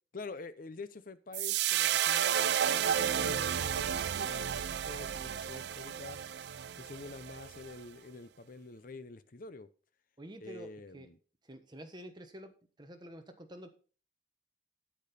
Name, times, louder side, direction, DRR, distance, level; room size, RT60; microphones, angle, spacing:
voice 1, 0.1-6.2 6.5-9.7 10.4-11.2, left 3 dB, 45° left, 0.6 m, -47 dB
sound 1, 1.3-7.7, right 9 dB, 60° right, 0.4 m, -32 dB
voice 2, 10.2-11.1 11.4-12.5 12.8-13.7, equal, 25° right, 1.1 m, -48 dB
8.8 x 8.5 x 4.2 m
head